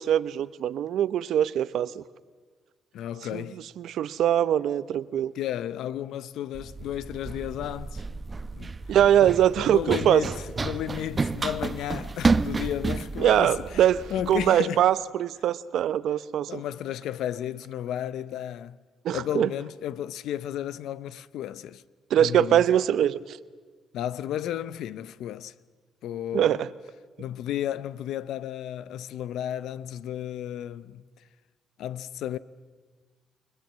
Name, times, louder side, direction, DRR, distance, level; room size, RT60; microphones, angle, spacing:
voice 1, 0.0-2.0 3.3-3.4 3.8-5.3 8.9-10.2 13.2-14.0 14.3-16.6 19.0-19.5 22.1-23.4 26.3-26.7, right 10 dB, 75° right, 0.8 m, -22 dB
voice 2, 2.9-3.7 5.3-8.0 8.5-8.7 9.2-9.4 9.6-13.8 14.1-14.8 16.5-18.8 19.1-21.8 22.2-22.7 23.9-25.5 26.0-26.7 27.2-31.0 31.8-32.4, left 11 dB, 80° left, 0.8 m, -33 dB
Run, 6.6-14.5, right 4 dB, 30° right, 0.9 m, -31 dB
29.5 x 21.0 x 7.5 m
cardioid pair, 90°, 0 cm